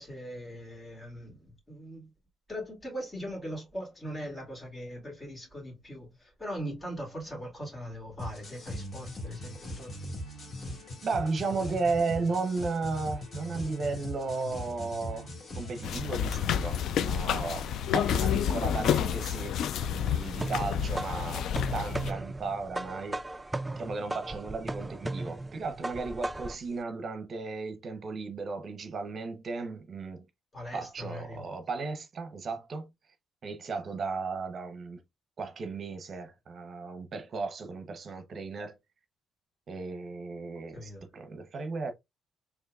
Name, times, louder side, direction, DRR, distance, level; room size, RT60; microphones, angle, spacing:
voice 1, 0.0-2.1 2.5-9.9 30.5-31.4 40.7-41.0, equal, 25° left, 2.3 m, -40 dB
sound 1, 8.2-16.0, left 1 dB, 40° left, 1.9 m, -40 dB
voice 2, 11.0-15.3 15.5-19.6 19.9-23.2 23.8-30.3 30.7-32.9 33.4-35.0 35.4-38.8 39.7-41.9, right 4 dB, 50° right, 0.7 m, -35 dB
sound 2, 15.8-22.1, left 9 dB, 75° left, 0.4 m, -29 dB
sound 3, 19.8-26.7, right 2 dB, 15° right, 0.3 m, -37 dB
4.4 x 2.9 x 2.3 m
cardioid pair, 90°, 0 cm